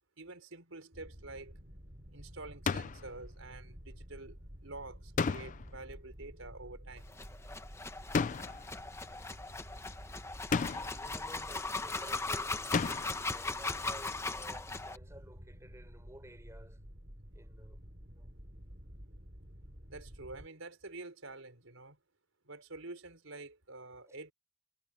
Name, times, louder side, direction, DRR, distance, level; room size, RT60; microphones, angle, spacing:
voice 1, 0.2-1.6 2.1-4.4 4.6-7.1 19.9-22.0 22.5-24.3, right 2 dB, 85° right, 4.6 m, -48 dB
sound 1, 0.9-20.5, equal, 50° right, 5.8 m, -51 dB
sound 2, 2.7-3.1 5.2-5.8 8.1-8.7 10.5-11.1 12.7-13.3, left 5 dB, 40° left, 0.4 m, -33 dB
sound 3, 7.1-15.0, left 3 dB, 15° left, 0.9 m, -39 dB
voice 2, 10.7-12.7 13.3-16.8 17.3-17.8 18.1-18.3 24.0-24.2, right 1 dB, 15° right, 4.3 m, -54 dB
head